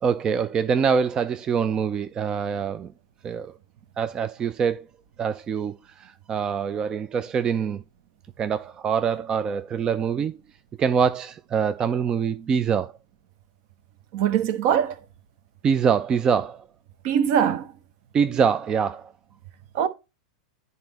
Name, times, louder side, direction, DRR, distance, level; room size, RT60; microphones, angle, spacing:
voice 1, 0.0-2.9 3.2-3.5 4.0-4.8 5.2-7.8 8.4-10.3 10.8-12.9 15.6-16.6 18.1-19.1, right 6 dB, 25° right, 0.4 m, -24 dB
voice 2, 14.1-15.0 17.0-17.7 19.7-19.9, right 9 dB, 45° right, 0.7 m, -22 dB
10.5 x 4.0 x 4.0 m
figure-of-eight pair, 90°, 3 cm